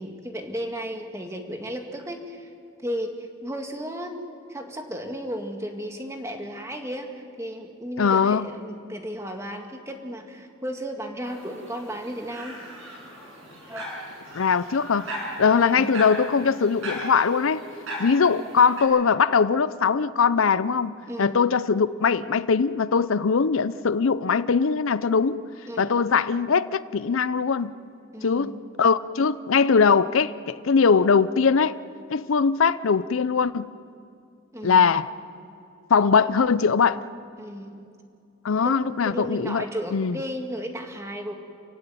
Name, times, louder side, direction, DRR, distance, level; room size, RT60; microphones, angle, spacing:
voice 1, 0.0-2.5 2.8-4.2 4.5-12.6 13.7-13.9 15.6-16.0 21.1-21.4 25.7-26.0 28.1-28.6 34.5-34.8 37.4-37.8 38.6-41.3, equal, 15° right, 3 dB, 1.8 m, -34 dB
voice 2, 8.0-8.5 14.3-15.1 15.4-17.6 18.0-20.9 21.2-25.4 25.8-27.7 28.2-31.8 32.1-33.7 34.6-35.1 35.9-37.0 38.4-39.6 39.9-40.2, left 5 dB, 70° left, 15 dB, 0.5 m, -21 dB
sound 1, 11.2-18.8, equal, 70° right, 7.9 m, -37 dB
29.5 x 16.0 x 9.3 m, 2.5 s
head